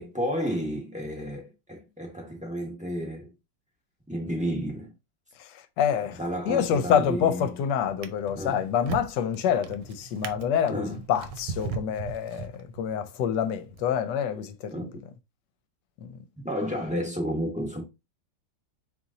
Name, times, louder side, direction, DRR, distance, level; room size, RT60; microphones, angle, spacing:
voice 1, 0.0-3.3 4.1-4.9 6.2-7.5 8.3-8.6 10.7-11.0 14.7-15.0 16.4-17.8, equal, 5° right, 0.8 m, -31 dB
voice 2, 5.8-6.2 6.5-14.9 16.0-16.2, left 8 dB, 75° left, 1.2 m, -27 dB
Drawer open or close, 6.8-7.3 7.8-13.0 13.7-13.9, right 6 dB, 75° right, 1.2 m, -39 dB
4.0 x 3.0 x 3.6 m
omnidirectional pair, 1.9 m